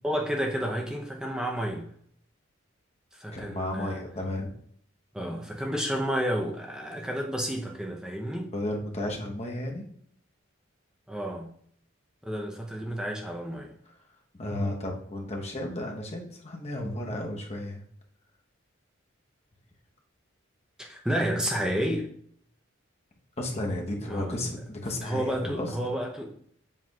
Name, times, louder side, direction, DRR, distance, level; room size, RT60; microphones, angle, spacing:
voice 1, 0.0-1.9 3.1-4.0 5.1-8.5 11.1-11.5 12.2-13.7 20.8-22.1 24.1-24.5 25.0-26.3, equal, 5° right, 0 dB, 0.6 m, -31 dB
voice 2, 3.3-4.5 8.5-9.8 13.9-14.0 14.4-17.8 23.4-25.9, left 1 dB, 30° left, 1 dB, 0.9 m, -33 dB
7.4 x 5.7 x 2.3 m, 0.63 s
head